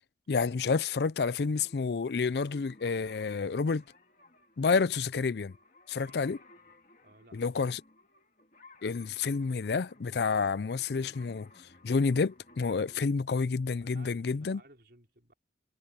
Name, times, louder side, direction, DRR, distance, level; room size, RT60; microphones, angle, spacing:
voice 1, 0.3-3.8 4.6-5.5 5.9-6.4 7.3-7.8 8.8-11.5 11.8-14.6, left 4 dB, 70° left, 0.5 m, -29 dB
sound 1, 1.4-13.0, left 2 dB, 45° left, 2.0 m, -59 dB
voice 2, 7.0-7.8 12.9-13.0 13.8-15.3, right 2 dB, 60° right, 4.4 m, -58 dB
head